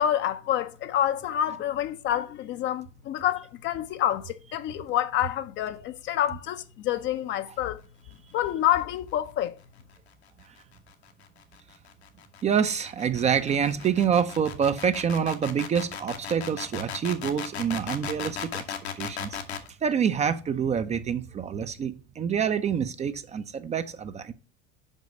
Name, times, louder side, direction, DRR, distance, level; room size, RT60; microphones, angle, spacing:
voice 1, 0.0-7.8 8.3-9.5, left 11 dB, 35° left, 0.6 m, -27 dB
sound 1, 10.4-19.7, left 7 dB, 70° left, 1.2 m, -37 dB
voice 2, 12.4-18.6 19.0-19.4 19.8-24.3, right 7 dB, 20° right, 0.5 m, -27 dB
5.5 x 5.4 x 5.1 m
figure-of-eight pair, 75°, 33 cm